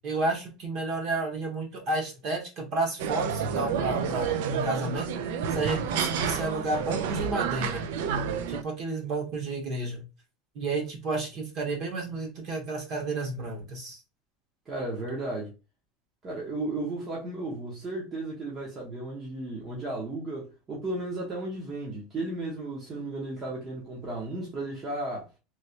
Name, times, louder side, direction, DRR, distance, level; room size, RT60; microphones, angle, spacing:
voice 1, 0.0-5.1 5.5-7.8 8.5-10.0 10.5-14.0, right 2 dB, 40° right, 1.1 m, -31 dB
sound 1, 3.0-8.6, right 7 dB, 70° right, 0.4 m, -30 dB
voice 2, 14.7-15.5 16.2-25.3, right 2 dB, 20° right, 0.8 m, -34 dB
3.1 x 2.9 x 2.8 m
cardioid pair, 175°, 0 cm